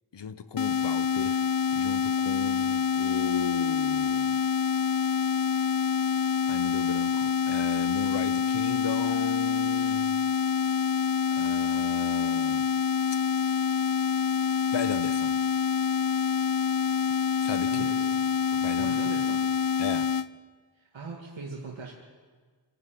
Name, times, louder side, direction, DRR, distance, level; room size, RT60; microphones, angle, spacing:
voice 1, 0.1-4.4 6.5-10.2 11.3-12.7 14.7-15.4 17.4-17.9 18.5-19.0 19.8-20.2, left 6 dB, 65° left, 1.0 m, -36 dB
sound 1, 0.6-20.3, left 7 dB, 50° left, 0.6 m, -26 dB
voice 2, 17.7-18.2 18.8-19.4 20.7-21.9, right 4 dB, 85° right, 2.3 m, -40 dB
26.0 x 12.0 x 9.3 m
wide cardioid pair, 90°, 45 cm